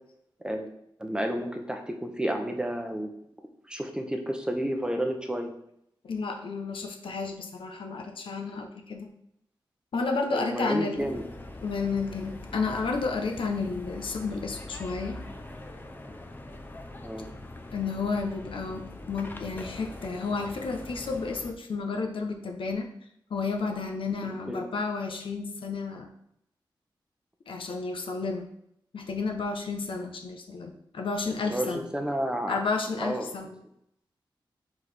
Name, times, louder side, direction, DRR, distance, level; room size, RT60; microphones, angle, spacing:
voice 1, 1.0-3.1 3.7-5.5 10.3-11.2 17.0-17.3 24.2-24.6 31.5-32.6 33.0-33.3, right 1 dB, 10° right, 4 dB, 0.8 m, -31 dB
voice 2, 6.0-9.1 9.9-11.1 11.6-15.2 17.7-22.9 23.3-26.1 27.5-28.5 28.9-31.8 32.5-33.5, left 4 dB, 75° left, 4 dB, 0.9 m, -31 dB
sound 1, 11.0-21.5, left 2 dB, 20° left, 0.7 m, -43 dB
4.8 x 4.8 x 4.3 m, 0.76 s
wide cardioid pair, 100°, 9 cm